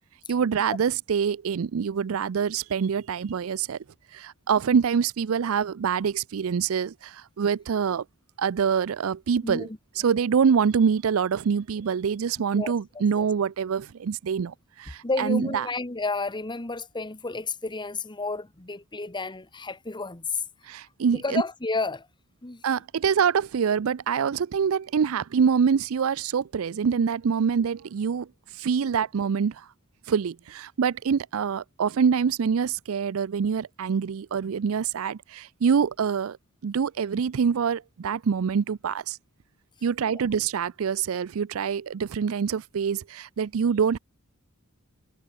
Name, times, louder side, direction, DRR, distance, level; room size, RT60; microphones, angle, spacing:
voice 1, 0.3-3.8 4.1-8.0 8.4-9.7 10.0-15.6 20.7-21.4 22.6-28.3 28.6-29.7 30.1-36.4 36.6-39.2 39.8-44.0, right 6 dB, 75° right, 0.4 m, -25 dB
voice 2, 9.4-9.8 12.5-12.7 13.2-13.3 15.0-20.4 21.1-22.1 22.4-22.6 28.8-28.9 40.1-40.2, left 3 dB, 20° left, 1.3 m, -31 dB
head